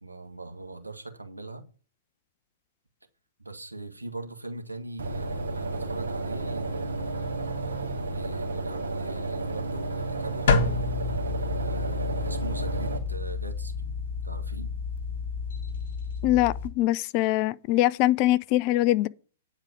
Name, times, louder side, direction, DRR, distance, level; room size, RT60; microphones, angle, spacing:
voice 1, 0.0-1.6 3.4-10.5 11.6-13.9 14.2-14.7, right 2 dB, 85° right, 1.7 m, -41 dB
sound 1, 5.0-13.0, right 2 dB, 65° right, 2.4 m, -32 dB
sound 2, 10.5-16.7, left 4 dB, 55° left, 2.0 m, -29 dB
voice 2, 16.2-19.1, left 16 dB, 35° left, 0.5 m, -23 dB
9.6 x 4.9 x 7.2 m
figure-of-eight pair, 110°, 0 cm